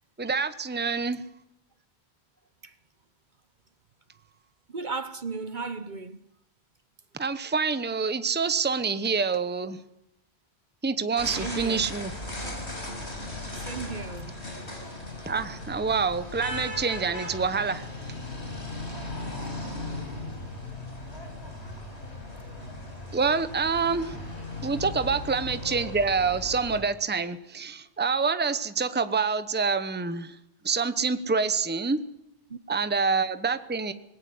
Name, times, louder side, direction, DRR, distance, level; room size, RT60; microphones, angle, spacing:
voice 1, 0.2-1.2 7.2-9.8 10.8-12.1 15.3-17.8 23.1-24.2 24.6-30.3 30.6-32.0 32.7-33.9, right 5 dB, 10° right, 0.9 m, -27 dB
voice 2, 4.7-6.2 11.4-11.9 13.5-14.4 18.9-19.1 32.5-32.6, right 4 dB, 50° right, 1.0 m, -35 dB
sound 1, 11.2-26.8, left 2 dB, 85° left, 5.6 m, -37 dB
20.0 x 17.5 x 7.8 m
omnidirectional pair, 1.1 m